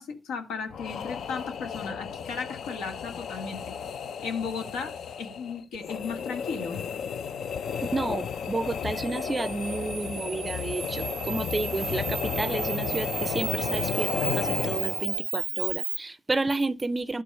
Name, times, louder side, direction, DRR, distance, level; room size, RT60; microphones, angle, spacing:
voice 1, 0.0-3.7 4.2-4.9 5.2-6.8, left 5 dB, 90° left, 1.6 m, -35 dB
sound 1, 0.7-15.3, left 7 dB, 60° left, 0.5 m, -33 dB
voice 2, 7.8-17.2, right 2 dB, 20° right, 0.5 m, -31 dB
Camera, 9.0-16.0, right 9 dB, 70° right, 0.5 m, -34 dB
11.5 x 4.7 x 5.4 m
cardioid pair, 90°, 0 cm